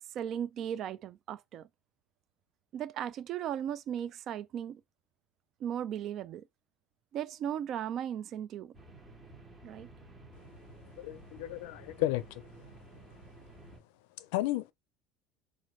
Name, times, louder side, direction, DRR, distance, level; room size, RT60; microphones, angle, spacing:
voice 1, 0.1-1.7 2.7-4.8 5.6-6.5 7.1-8.7 9.6-9.9, right 9 dB, 45° right, 0.3 m, -36 dB
sound 1, 8.7-13.8, right 2 dB, 20° right, 1.2 m, -53 dB
voice 2, 11.0-12.5 14.2-14.7, left 16 dB, 85° left, 0.4 m, -33 dB
4.1 x 2.5 x 3.1 m
cardioid pair, 140°, 0 cm